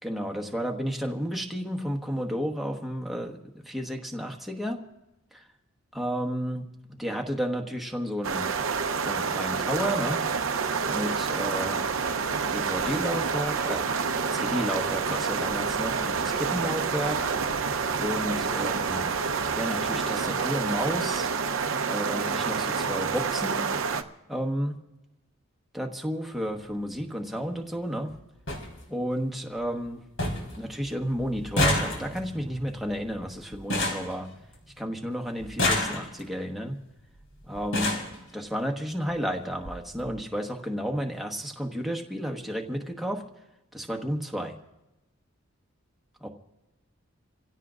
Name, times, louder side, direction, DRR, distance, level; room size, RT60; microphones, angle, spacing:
voice 1, 0.0-4.8 5.3-5.5 5.9-8.5 9.0-10.2 10.9-11.9 12.5-13.8 14.3-17.3 18.0-19.1 19.5-21.3 21.8-23.7 24.3-24.7 25.7-28.1 28.9-30.0 30.6-34.3 34.8-36.8 37.4-38.0 38.3-43.2 43.7-44.5 46.2-46.3, equal, ahead, 1 dB, 1.2 m, -32 dB
sound 1, 8.2-24.0, right 5 dB, 75° right, 0.8 m, -28 dB
sound 2, 26.3-26.5 27.8-27.9 28.1-28.2 28.5-28.7 29.1-29.6 29.9-30.0 30.2-30.6 30.8-34.8 35.4-36.4 37.2-37.3 37.6-38.1 39.1-39.2 39.5-39.7 40.0-40.1, left 1 dB, 70° left, 4.0 m, -29 dB
28.0 x 16.5 x 2.5 m, 0.97 s
head